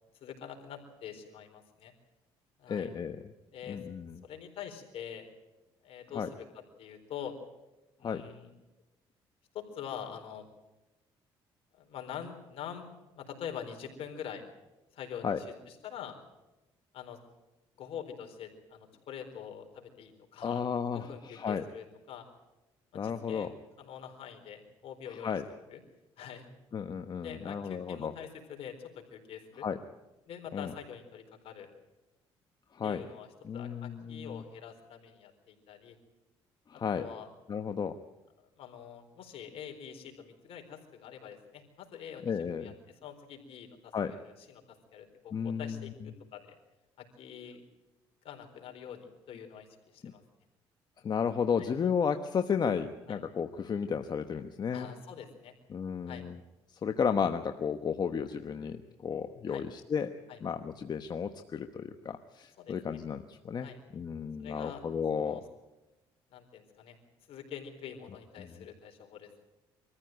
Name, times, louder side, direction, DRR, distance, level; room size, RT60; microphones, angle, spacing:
voice 1, 0.2-1.9 2.6-2.9 3.5-3.8 4.2-5.3 5.8-6.5 6.8-7.3 8.0-8.5 9.5-10.5 11.8-14.4 14.9-16.2 16.9-17.2 17.8-20.6 20.9-22.2 23.0-23.5 23.8-25.8 26.2-26.4 27.2-29.7 30.3-31.7 32.8-33.3 33.5-36.0 36.7-37.3 38.6-42.3 42.6-42.7 43.0-44.6 44.9-46.6 47.0-47.6 48.2-49.7 49.9-50.2 51.6-51.7 53.1-53.2 54.7-55.5 56.1-56.3 59.5-59.6 60.3-60.4 62.6-63.0 63.6-63.8 64.4-64.8 65.2-65.4 66.3-67.0 67.3-69.5, left 8 dB, 70° left, 4 dB, 4.2 m, -45 dB
voice 2, 2.7-3.2 3.7-4.2 6.1-6.3 8.0-8.2 15.2-15.4 20.4-21.6 22.9-23.5 25.2-25.4 26.7-28.1 29.6-29.8 30.5-30.7 32.7-33.0 33.4-34.4 36.7-37.0 37.5-37.9 42.2-42.7 43.9-44.1 45.3-45.9 50.0-50.1 51.0-54.9 55.7-56.4 56.7-60.1 60.4-65.4 68.4-68.5, left 6 dB, 45° left, 7 dB, 1.1 m, -33 dB
24.0 x 14.5 x 9.1 m, 1.0 s
cardioid pair, 90°, 10 cm